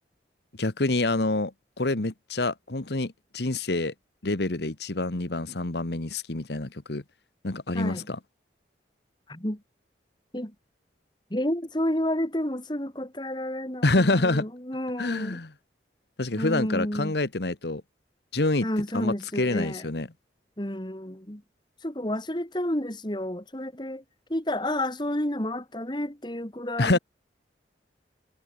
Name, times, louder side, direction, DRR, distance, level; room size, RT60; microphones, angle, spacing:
voice 1, 0.6-1.5 1.8-3.9 4.2-7.0 7.4-8.2 13.8-14.5 15.0-15.5 16.2-17.8 18.3-18.7 18.9-20.1 26.8-27.0, left 2 dB, 65° left, 1.3 m, -26 dB
voice 2, 7.7-8.1 9.3-9.6 10.3-10.5 11.3-15.4 16.3-17.1 18.6-19.9 20.6-21.4 21.8-24.0 24.3-27.0, left 1 dB, 25° left, 2.7 m, -30 dB
head